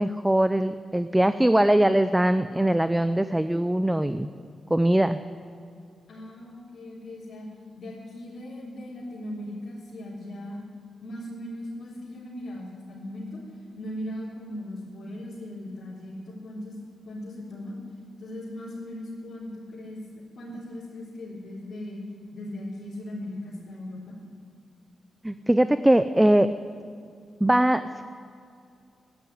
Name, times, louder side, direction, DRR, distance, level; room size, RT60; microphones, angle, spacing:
voice 1, 0.0-4.3 4.7-5.2 25.2-26.5 27.4-28.0, right 1 dB, 10° right, 12 dB, 0.5 m, -21 dB
voice 2, 6.1-7.5 7.8-10.6 11.0-13.4 13.8-16.8 17.0-17.8 18.2-20.0 20.4-22.0 22.3-24.2, left 1 dB, 65° left, -8 dB, 3.8 m, -38 dB
12.5 x 11.5 x 9.3 m, 2.4 s
cardioid pair, 70°, 0 cm